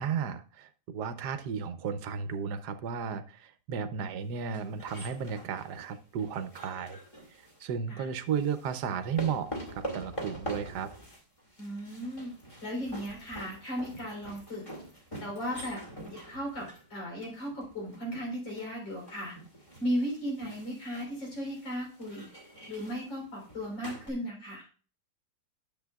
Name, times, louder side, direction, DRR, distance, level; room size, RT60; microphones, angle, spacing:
voice 1, 0.0-7.0 7.3-10.9, right 7 dB, 70° right, 10 dB, 1.2 m, -34 dB
sound 1, 4.5-7.6 8.4-24.1, right 1 dB, 20° left, 1.8 m, -45 dB
voice 2, 11.6-12.3 12.6-14.7 15.2-15.8 16.1-19.4 19.8-22.3 22.7-24.7, equal, 80° left, -1 dB, 4.7 m, -36 dB
10.0 x 7.3 x 2.3 m, 0.38 s
omnidirectional pair, 2.0 m